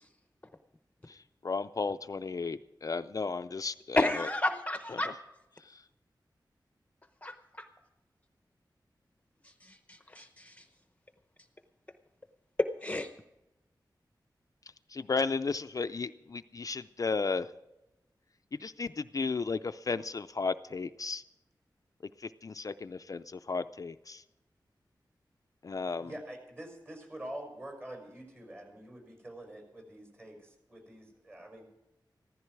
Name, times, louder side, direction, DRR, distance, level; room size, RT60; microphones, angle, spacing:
voice 1, 1.1-4.3 4.9-5.0 5.6-5.8 14.9-17.5 18.6-21.2 22.2-24.2 25.6-26.1, left 4 dB, 45° left, 10 dB, 0.4 m, -34 dB
voice 2, 4.0-5.1 7.2-7.7 9.6-10.6 12.6-13.1, left 2 dB, 20° left, 7 dB, 0.8 m, -31 dB
voice 3, 25.7-31.6, right 1 dB, 30° right, 3 dB, 5.6 m, -46 dB
15.5 x 14.0 x 4.6 m, 0.93 s
wide cardioid pair, 100°, 8 cm